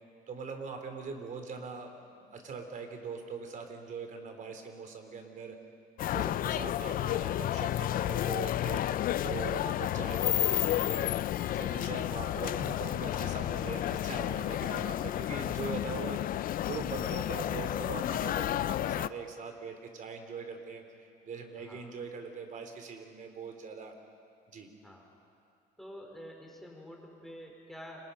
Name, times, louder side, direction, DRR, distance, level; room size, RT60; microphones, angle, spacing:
voice 1, 0.3-5.6 6.1-8.8 9.2-11.2 11.5-16.2 16.6-20.8 21.2-23.9 24.5-24.7, right 5 dB, 50° right, 5 dB, 3.7 m, -41 dB
sound 1, 6.0-19.1, left 13 dB, 55° left, 0.5 m, -31 dB
voice 2, 25.8-28.0, equal, ahead, -1 dB, 5.0 m, -48 dB
29.5 x 26.0 x 5.7 m, 2.4 s
cardioid pair, 110°, 17 cm